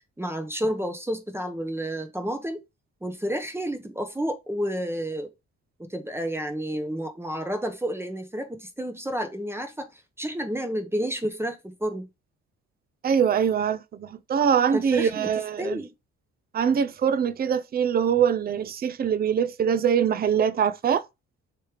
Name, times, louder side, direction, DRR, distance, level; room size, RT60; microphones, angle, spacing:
voice 1, 0.2-2.6 3.0-5.3 5.8-12.1 14.7-15.9, equal, 10° right, 0.8 m, -30 dB
voice 2, 13.0-15.8 16.5-21.0, right 7 dB, 30° right, 0.4 m, -23 dB
3.2 x 3.2 x 4.7 m
cardioid pair, 90°, 30 cm